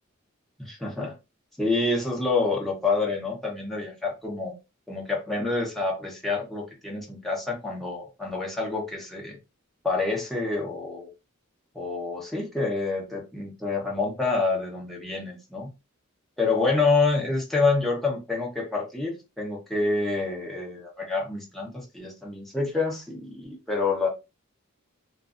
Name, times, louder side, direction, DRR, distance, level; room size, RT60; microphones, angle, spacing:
voice 1, 0.6-1.1 1.6-4.5 4.9-9.4 9.8-11.1 11.7-15.7 16.4-24.1, left 3 dB, ahead, 0.8 m, -27 dB
2.6 x 2.5 x 2.4 m
head